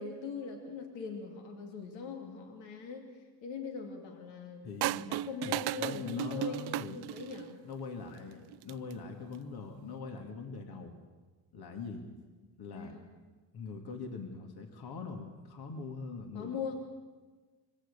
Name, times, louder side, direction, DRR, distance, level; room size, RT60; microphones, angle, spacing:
voice 1, 0.0-3.1 3.4-7.6 12.4-13.0 16.3-16.7, left 5 dB, 85° left, 2 dB, 2.7 m, -41 dB
voice 2, 4.6-5.1 5.4-7.0 7.6-11.0 11.5-12.1 12.6-12.9 13.5-16.7, left 4 dB, 60° left, 3 dB, 2.5 m, -42 dB
sound 1, 4.8-7.5 8.5-8.9, right 15 dB, 65° right, 0.5 m, -35 dB
23.5 x 16.5 x 6.8 m, 1.3 s
cardioid pair, 80°, 43 cm